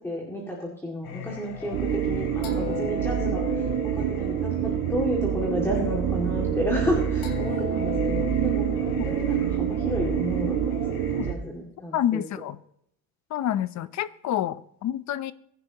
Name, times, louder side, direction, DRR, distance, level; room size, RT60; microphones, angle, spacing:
voice 1, 0.0-8.7 9.0-12.2, equal, 5° left, -2 dB, 2.3 m, -31 dB
Singing, 1.0-11.3, left 8 dB, 85° left, 3.4 m, -37 dB
sound 1, 1.7-11.3, right 9 dB, 85° right, 2.1 m, -27 dB
voice 2, 11.9-12.6 13.3-15.3, left 11 dB, 45° left, 15 dB, 0.7 m, -28 dB
21.5 x 10.5 x 2.9 m, 0.71 s
cardioid pair, 155°, 39 cm